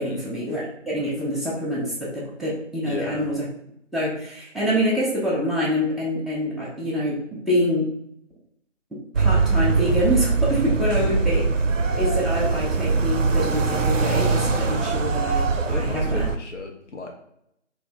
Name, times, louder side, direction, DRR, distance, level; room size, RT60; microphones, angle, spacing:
voice 1, 0.0-3.5 3.9-8.0 9.1-11.4 12.0-16.2, equal, ahead, -5 dB, 0.5 m, -26 dB
voice 2, 2.9-3.3 10.9-11.3 15.6-17.1, left 3 dB, 65° left, 2 dB, 0.6 m, -34 dB
sound 1, 9.1-16.4, right 4 dB, 80° right, 0.5 m, -22 dB
3.1 x 2.5 x 3.4 m, 0.77 s
figure-of-eight pair, 175°, 38 cm